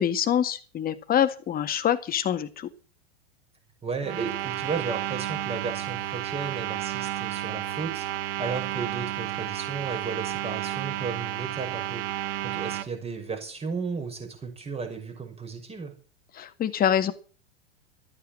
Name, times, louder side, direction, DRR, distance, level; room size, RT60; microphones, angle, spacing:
voice 1, 0.0-2.7 16.4-17.1, left 9 dB, 25° left, 10 dB, 1.9 m, -25 dB
voice 2, 3.8-15.9, right 5 dB, 20° right, 5 dB, 6.0 m, -34 dB
sound 1, 4.0-12.9, right 13 dB, 60° right, 1.7 m, -32 dB
14.0 x 9.5 x 7.6 m, 0.37 s
hypercardioid pair, 110°, 33 cm